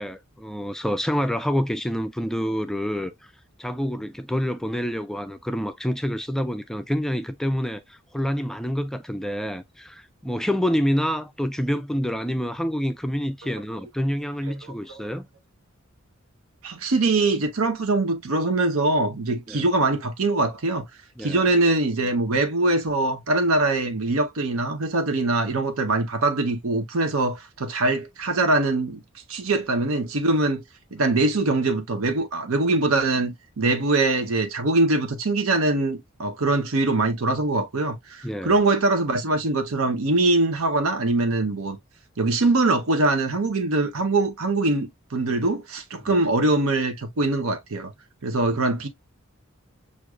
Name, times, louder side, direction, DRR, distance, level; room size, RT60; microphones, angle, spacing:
voice 1, 0.0-3.3 3.6-15.3 19.5-19.6 21.2-21.5 38.2-38.6 46.0-46.2, equal, ahead, 0.3 m, -27 dB
voice 2, 16.6-20.8 21.2-29.0 29.3-30.6 30.9-41.8 42.2-47.9 48.2-48.9, right 2 dB, 90° right, 0.8 m, -23 dB
6.2 x 2.5 x 2.3 m
head